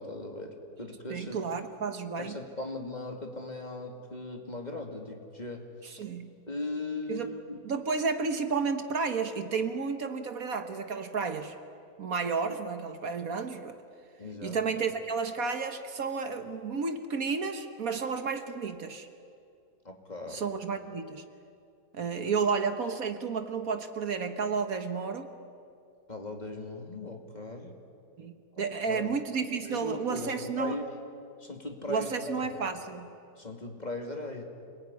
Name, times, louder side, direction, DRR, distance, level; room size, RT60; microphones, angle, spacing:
voice 1, 0.0-1.4 2.2-6.0 6.5-7.7 14.2-14.6 19.8-20.4 26.1-27.7 28.6-29.1 29.6-30.9 31.4-32.4 33.4-34.4, left 2 dB, 25° left, 3 dB, 2.5 m, -38 dB
voice 2, 1.1-2.4 5.8-6.3 7.1-7.3 7.6-11.5 12.0-13.8 14.4-19.1 20.3-21.2 21.9-25.3 28.2-30.7 31.9-33.2, right 5 dB, 60° right, 8 dB, 1.6 m, -32 dB
27.0 x 20.5 x 9.7 m, 2.5 s
omnidirectional pair, 1.7 m